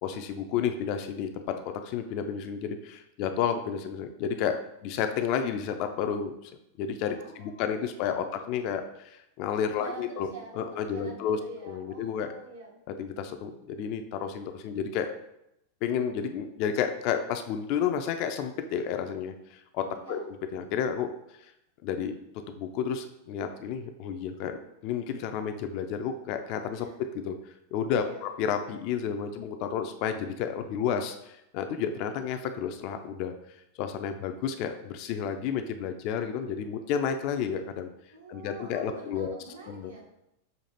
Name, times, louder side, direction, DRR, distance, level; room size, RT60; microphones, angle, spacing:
voice 1, 0.0-6.5 6.8-10.3 10.6-11.4 11.6-12.3 13.0-15.1 15.8-20.2 20.5-21.1 21.4-21.5 21.8-22.2 22.5-27.4 27.7-33.3 33.8-37.9 38.3-39.3 39.7-39.9, left 7 dB, 45° left, 7 dB, 0.4 m, -31 dB
voice 2, 7.1-7.9 9.7-12.8 19.9-20.3 26.7-27.0 27.9-28.3 38.1-40.3, right 3 dB, 70° right, -3 dB, 1.1 m, -46 dB
6.4 x 2.5 x 2.8 m, 0.82 s
figure-of-eight pair, 90°, 0 cm